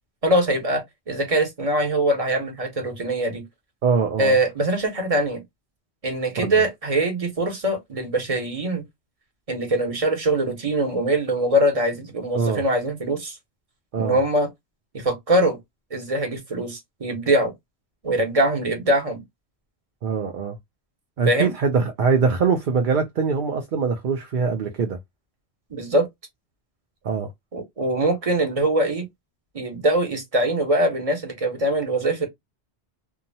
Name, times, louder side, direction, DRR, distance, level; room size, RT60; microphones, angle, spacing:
voice 1, 0.2-3.4 4.2-5.4 6.0-8.8 9.5-13.3 14.0-14.5 14.9-15.6 15.9-17.5 18.0-19.2 21.3-21.5 25.7-26.1 27.5-29.1 29.5-32.3, right 1 dB, 35° right, 1.0 m, -22 dB
voice 2, 3.8-4.3 6.4-6.5 12.3-12.6 13.9-14.2 20.0-20.6 21.2-25.0 27.0-27.3, right 5 dB, 55° right, 0.7 m, -23 dB
2.8 x 2.2 x 2.6 m
omnidirectional pair, 1.1 m